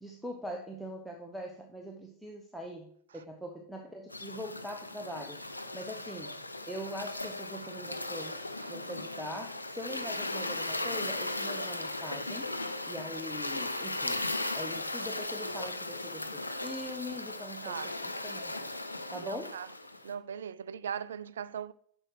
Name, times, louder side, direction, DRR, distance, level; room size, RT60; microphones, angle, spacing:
voice 1, 0.0-5.4 5.7-6.4 6.7-12.5 12.9-14.2 14.5-18.6 19.1-19.6, equal, ahead, 0.9 m, -42 dB
sound 1, 4.1-20.1, left 2 dB, 85° left, 0.6 m, -37 dB
voice 2, 19.2-19.7 20.0-21.7, right 8 dB, 65° right, 0.4 m, -39 dB
7.6 x 6.0 x 4.8 m
figure-of-eight pair, 90°, 0 cm